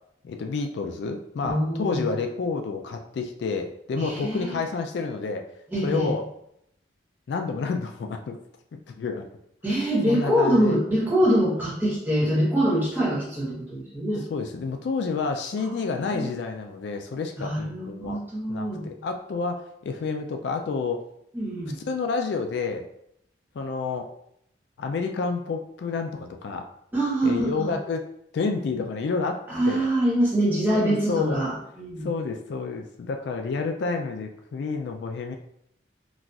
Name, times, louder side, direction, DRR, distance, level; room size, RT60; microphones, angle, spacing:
voice 1, 0.2-5.4 5.8-6.2 7.3-8.4 9.0-9.3 10.0-10.8 14.3-18.2 18.5-21.0 21.9-22.9 23.6-24.1 24.8-26.6 27.2-28.0 28.3-29.4 29.7-29.9 30.7-31.4 32.0-35.4, left 4 dB, 65° left, 4 dB, 0.3 m, -29 dB
voice 2, 1.4-2.0 4.0-4.5 5.7-6.1 9.6-14.2 16.1-16.3 17.4-18.8 21.3-21.8 26.9-27.8 29.5-32.1, right 1 dB, 10° right, -7 dB, 1.1 m, -24 dB
4.0 x 2.3 x 2.3 m, 0.74 s
head